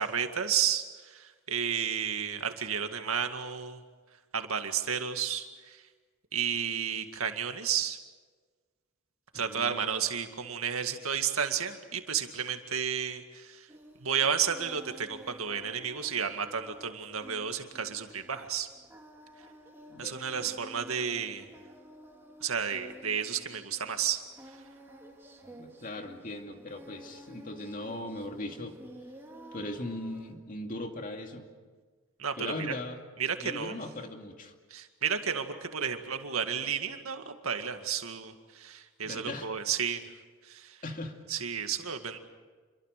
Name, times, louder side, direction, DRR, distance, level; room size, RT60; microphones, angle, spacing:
voice 1, 0.0-3.8 4.3-5.8 6.3-8.0 9.3-13.7 14.0-18.7 20.0-21.5 22.4-24.2 32.2-32.7 33.2-33.8 34.7-40.0 40.4-40.8 41.3-42.2, right 7 dB, 85° right, 6 dB, 2.0 m, -32 dB
voice 2, 9.3-9.9 19.9-20.5 25.4-28.8 29.5-31.4 32.4-33.0 33.4-34.5 39.0-39.5 40.8-41.1, left 1 dB, 40° left, 4 dB, 2.4 m, -39 dB
Singing, 13.7-30.3, equal, 10° right, 3.0 m, -51 dB
28.0 x 22.5 x 6.8 m, 1.5 s
head